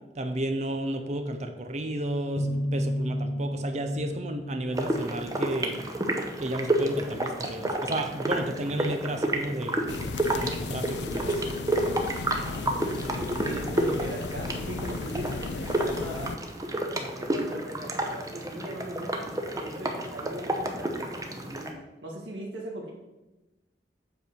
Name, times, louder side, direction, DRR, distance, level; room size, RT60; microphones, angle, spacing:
voice 1, 0.2-5.8 6.4-10.0 10.3-11.4, right 1 dB, 40° right, 6 dB, 0.7 m, -32 dB
sound 1, 2.4-6.1, equal, 15° left, 1.5 m, -32 dB
sound 2, 4.7-21.7, right 1 dB, 20° right, 0.9 m, -30 dB
sound 3, 9.9-16.4, left 4 dB, 75° left, 0.4 m, -35 dB
voice 2, 12.3-16.4 16.9-21.7 22.0-22.9, right 1 dB, 85° right, -2 dB, 1.6 m, -39 dB
8.0 x 4.6 x 6.6 m, 1.0 s
head